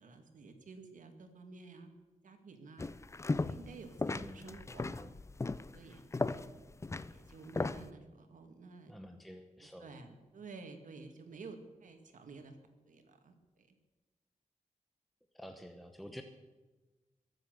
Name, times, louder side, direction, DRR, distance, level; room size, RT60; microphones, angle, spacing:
voice 1, 0.0-1.9 2.2-2.9 3.4-5.1 5.7-6.7 7.1-8.9 9.6-12.6 12.9-13.8, right 4 dB, 85° right, 6 dB, 2.2 m, -52 dB
sound 1, 2.8-3.7 4.0-7.9, left 3 dB, 20° left, 0.5 m, -36 dB
voice 2, 4.1-4.6 8.9-9.9 15.3-16.2, equal, ahead, 5 dB, 1.0 m, -49 dB
22.5 x 7.8 x 8.1 m, 1.2 s
wide cardioid pair, 115°, 13 cm